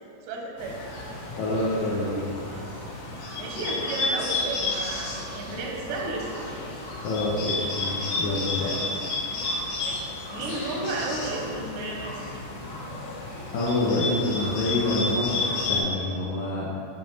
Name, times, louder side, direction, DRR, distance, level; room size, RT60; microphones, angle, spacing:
voice 1, 0.3-0.9 3.4-6.5 9.8-12.4, right 3 dB, 90° right, 0 dB, 3.0 m, -33 dB
Bird, 0.6-15.8, left 3 dB, 70° left, 2.8 m, -32 dB
voice 2, 1.4-2.3 7.0-8.7 13.5-16.7, left 2 dB, 85° left, -8 dB, 1.7 m, -27 dB
9.0 x 3.5 x 4.0 m, 2.6 s
omnidirectional pair, 4.9 m